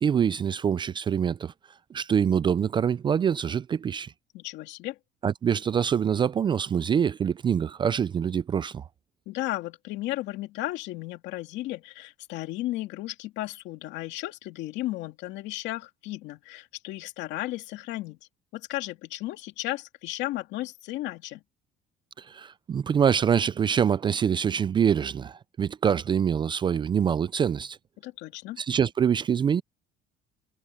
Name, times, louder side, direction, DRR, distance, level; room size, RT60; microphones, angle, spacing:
voice 1, 0.0-1.5 1.9-4.1 5.2-8.8 22.2-27.8 28.6-29.6, right 8 dB, 25° right, 0.3 m, -25 dB
voice 2, 4.3-5.0 9.3-18.2 18.5-21.4 28.0-28.6, left 17 dB, 75° left, 2.5 m, -34 dB
cardioid pair, 130°, 18 cm